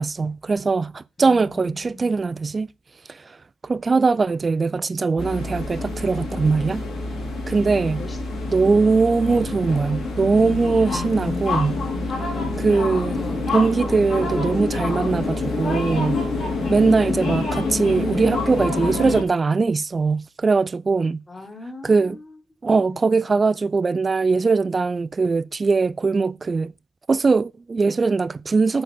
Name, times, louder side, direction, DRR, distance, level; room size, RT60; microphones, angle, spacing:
voice 1, 0.0-2.7 3.1-3.4 3.6-6.9 7.5-8.0 8.5-11.8 12.6-13.2 13.5-16.2 16.7-21.2 21.8-22.2 22.6-26.7 27.1-28.8, right 4 dB, 30° right, 0.4 m, -21 dB
voice 2, 1.2-2.2 7.5-7.6 8.0-8.5 8.8-8.9 12.3-12.8 13.1-13.5 16.3-17.0 21.3-22.2 22.6-23.0, left 3 dB, 20° left, 1.6 m, -41 dB
sound 1, 5.2-19.2, left 3 dB, 65° left, 3.5 m, -27 dB
7.9 x 4.2 x 3.5 m
cardioid pair, 90°, 0 cm